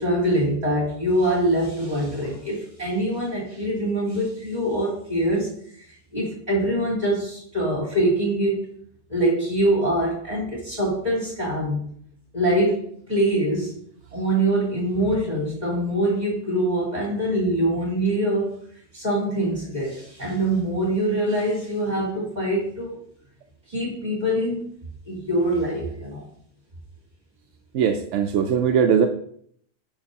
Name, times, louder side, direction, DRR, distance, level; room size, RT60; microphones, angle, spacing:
voice 1, 0.0-8.7 9.1-11.8 12.3-13.8 14.1-18.6 18.9-23.0 23.7-24.7 25.1-26.2, right 1 dB, 35° right, -5 dB, 4.0 m, -24 dB
voice 2, 27.7-29.1, right 7 dB, 85° right, 5 dB, 1.0 m, -20 dB
10.5 x 5.9 x 2.9 m, 0.63 s
omnidirectional pair, 1.2 m